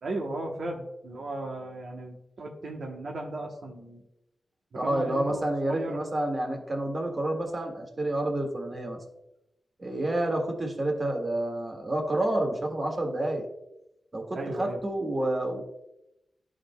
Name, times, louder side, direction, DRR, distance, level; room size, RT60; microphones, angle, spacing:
voice 1, 0.0-4.0 4.7-6.0 14.3-14.8, right 2 dB, 75° right, 0 dB, 0.9 m, -36 dB
voice 2, 4.7-9.0 9.8-13.4 14.1-15.6, right 1 dB, 35° right, 2 dB, 1.7 m, -29 dB
13.0 x 5.1 x 2.2 m, 0.88 s
wide cardioid pair, 95°, 0 cm